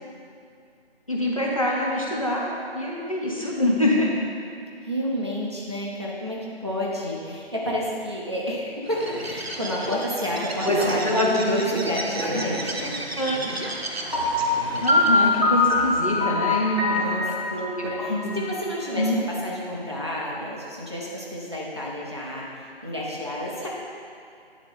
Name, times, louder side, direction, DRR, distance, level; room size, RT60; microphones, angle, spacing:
voice 1, 1.1-2.5 2.7-4.1 10.6-10.8 11.0-11.5 12.3-12.4 13.2-13.4 14.8-17.0 17.8-18.4 19.0-19.2, left 1 dB, 35° left, -4 dB, 0.7 m, -24 dB
voice 2, 4.8-13.0 16.8-19.1 19.4-23.7, equal, 25° right, -5 dB, 0.6 m, -30 dB
Bird, 8.9-15.5, right 2 dB, 70° right, 0.8 m, -33 dB
Piano, 14.1-19.0, left 2 dB, 45° right, 1.5 m, -23 dB
9.5 x 3.9 x 3.6 m, 2.5 s
figure-of-eight pair, 160°, 32 cm